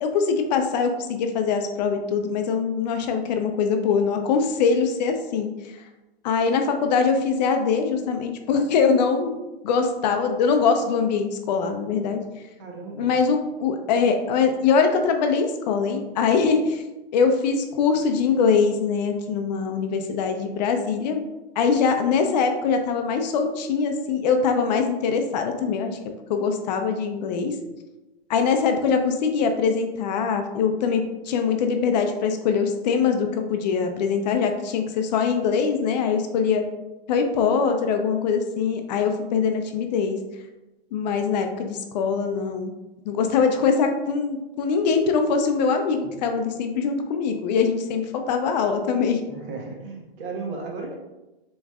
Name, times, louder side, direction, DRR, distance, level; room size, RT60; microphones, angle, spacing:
voice 1, 0.0-5.7 6.2-12.2 13.0-16.8 17.1-21.2 21.6-26.0 26.3-27.6 28.3-36.6 37.1-40.2 40.9-42.7 43.1-49.2, left 5 dB, 45° left, 5 dB, 0.6 m, -23 dB
voice 2, 12.6-13.1 49.3-51.0, right 4 dB, 55° right, 1 dB, 1.4 m, -35 dB
7.0 x 3.1 x 2.4 m, 1.0 s
hypercardioid pair, 135°, 31 cm